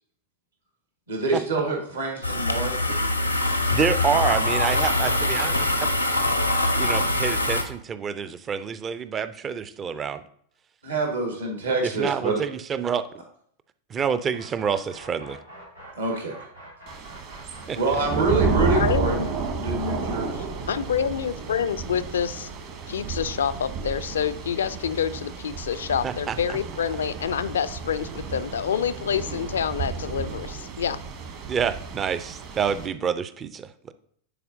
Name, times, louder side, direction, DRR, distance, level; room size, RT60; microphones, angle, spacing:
voice 1, 1.1-3.0 10.8-12.4 16.0-16.3 17.8-19.2 19.5-20.5, right 3 dB, 70° right, 1 dB, 1.7 m, -26 dB
sound 1, 2.2-7.6, left 2 dB, 90° left, 0.7 m, -23 dB
voice 2, 3.7-5.9 6.8-10.2 11.8-13.1 13.9-15.4 17.7-17.8 26.0-26.6 31.5-33.9, right 7 dB, 25° right, 14 dB, 0.4 m, -27 dB
sound 2, 14.3-24.1, right 1 dB, 90° right, 1.8 m, -47 dB
Thunder / Rain, 16.9-32.9, right 5 dB, 45° right, 1.2 m, -31 dB
voice 3, 18.6-19.3 20.4-22.5 22.9-31.0, left 8 dB, 65° left, 14 dB, 0.3 m, -27 dB
9.8 x 4.3 x 2.7 m, 0.65 s
figure-of-eight pair, 90°, 0 cm